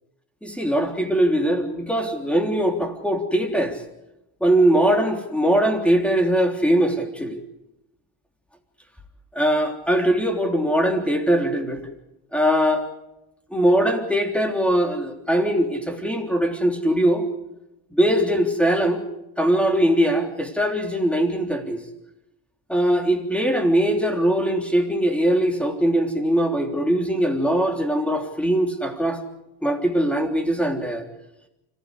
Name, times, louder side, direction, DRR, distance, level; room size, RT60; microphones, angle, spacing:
voice 1, 0.4-3.8 4.4-7.4 9.3-11.8 12.3-12.9 13.5-17.3 17.9-19.0 19.4-21.8 22.7-29.2 29.6-31.1, right 1 dB, 5° left, 4 dB, 3.4 m, -21 dB
25.5 x 15.5 x 8.3 m, 0.94 s
supercardioid pair, 95°, 41 cm